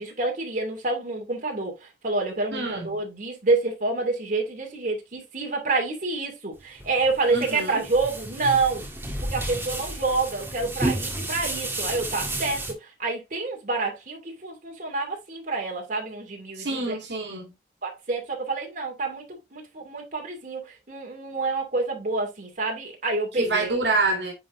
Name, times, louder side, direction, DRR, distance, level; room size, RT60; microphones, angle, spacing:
voice 1, 0.0-8.9 9.2-17.0 17.8-19.2 19.5-23.8, right 3 dB, 45° right, 2.5 m, -28 dB
voice 2, 2.5-3.0 7.3-7.8 16.6-17.5 23.3-24.3, right 3 dB, 80° right, 2.2 m, -27 dB
sound 1, 6.6-12.7, right 1 dB, 15° right, 1.7 m, -32 dB
9.9 x 4.1 x 2.6 m
head